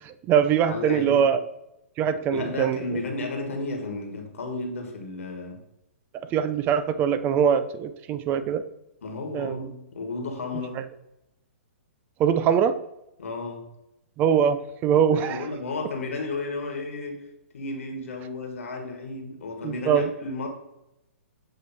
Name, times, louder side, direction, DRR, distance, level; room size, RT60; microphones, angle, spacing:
voice 1, 0.0-1.4 2.0-2.8 6.3-8.6 9.3-9.7 12.2-12.8 14.2-15.5 19.6-20.1, right 8 dB, 25° right, 12 dB, 0.3 m, -22 dB
voice 2, 0.7-1.3 2.3-5.6 9.0-10.8 13.2-13.6 15.1-17.2 17.5-20.5, left 3 dB, 75° left, 3 dB, 1.5 m, -33 dB
7.5 x 3.1 x 4.1 m, 0.87 s
hypercardioid pair, 130°, 7 cm